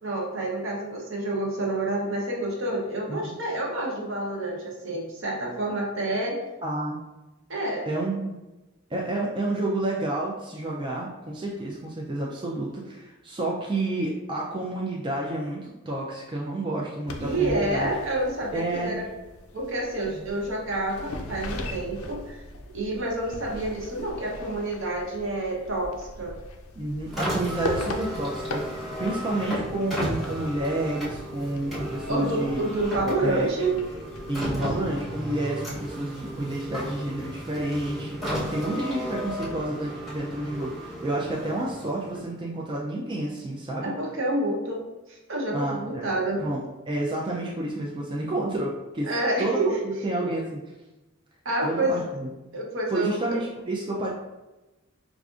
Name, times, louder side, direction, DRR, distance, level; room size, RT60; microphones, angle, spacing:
voice 1, 0.0-6.4 7.5-7.9 17.2-19.0 19.5-22.4 22.7-26.3 32.1-33.7 43.8-44.8 45.1-46.4 49.1-49.8 51.4-52.0 52.5-53.4, right 2 dB, 60° right, -2 dB, 0.8 m, -28 dB
voice 2, 6.6-7.0 7.9-8.3 8.9-17.9 18.5-19.0 20.1-20.3 26.8-32.6 33.2-33.5 34.3-43.9 45.5-46.1 46.4-49.1 49.4-49.6 49.8-50.4 51.6-52.3 52.9-54.1, right 1 dB, 20° right, -3 dB, 0.3 m, -30 dB
sound 1, 17.1-35.0, left 2 dB, 85° left, 0.5 m, -40 dB
Car, 27.0-42.5, equal, ahead, 0.9 m, -34 dB
4.7 x 2.4 x 2.4 m, 1.1 s
head